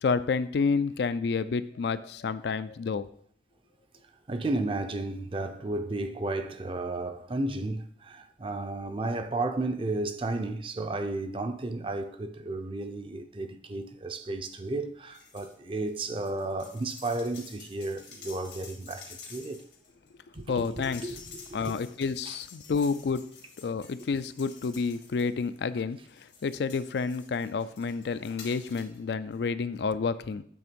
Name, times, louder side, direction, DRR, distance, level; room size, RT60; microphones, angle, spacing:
voice 1, 0.0-3.1 20.5-21.2 21.5-30.4, left 5 dB, 70° left, 0.4 m, -30 dB
voice 2, 4.3-19.6 20.3-21.7 22.3-22.4, right 2 dB, 30° right, 0.5 m, -33 dB
sound 1, 15.1-15.5 15.8-25.6 26.1-29.0 29.3-29.4, left 5 dB, 90° left, 2.0 m, -50 dB
8.5 x 3.5 x 5.2 m
head